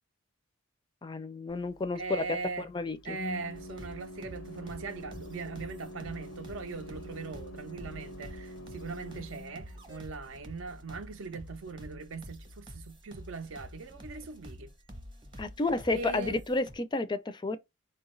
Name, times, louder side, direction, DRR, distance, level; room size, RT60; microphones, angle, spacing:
voice 1, 1.0-2.2 2.6-3.2 15.4-17.6, left 2 dB, 20° left, 0.3 m, -31 dB
Organ, 1.5-11.6, equal, 90° left, 0.6 m, -47 dB
voice 2, 1.9-2.7 3.0-14.7 15.9-16.4, right 4 dB, 70° right, 0.5 m, -40 dB
sound 1, 3.5-16.8, equal, 25° right, 0.7 m, -48 dB
4.2 x 2.3 x 3.1 m
head